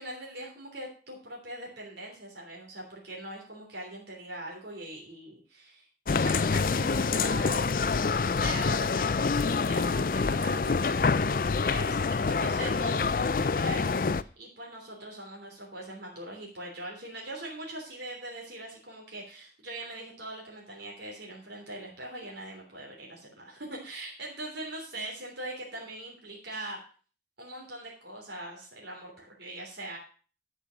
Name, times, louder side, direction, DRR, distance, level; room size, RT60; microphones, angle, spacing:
voice 1, 0.0-7.8 8.1-26.8 27.4-30.0, right 1 dB, 80° right, -2 dB, 3.4 m, -41 dB
sound 1, 6.1-14.2, left 4 dB, 50° left, 0.4 m, -26 dB
12.0 x 6.3 x 6.4 m, 0.39 s
head